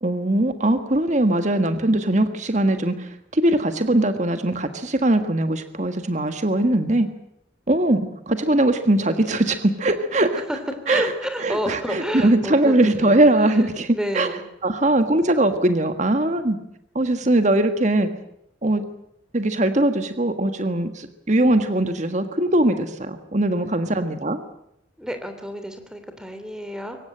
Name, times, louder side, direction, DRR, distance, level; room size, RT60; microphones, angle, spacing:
voice 1, 0.0-7.1 7.7-10.5 10.9-11.1 11.4-14.4 14.6-16.6 16.9-18.1 18.6-18.8 19.3-24.4, right 1 dB, 40° right, 8 dB, 1.6 m, -21 dB
voice 2, 10.8-13.5 13.9-14.4 25.0-27.0, equal, 5° right, 7 dB, 3.1 m, -30 dB
23.5 x 18.0 x 8.9 m, 0.77 s
head